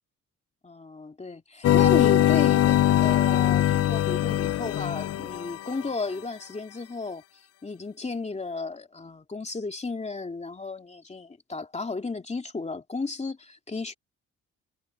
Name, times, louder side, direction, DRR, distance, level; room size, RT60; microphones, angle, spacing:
voice 1, 0.6-7.2 7.6-13.9, left 3 dB, 20° left, 2.7 m, -34 dB
sound 1, 1.6-5.9, left 13 dB, 50° left, 0.5 m, -22 dB
cardioid pair, 90°, 30 cm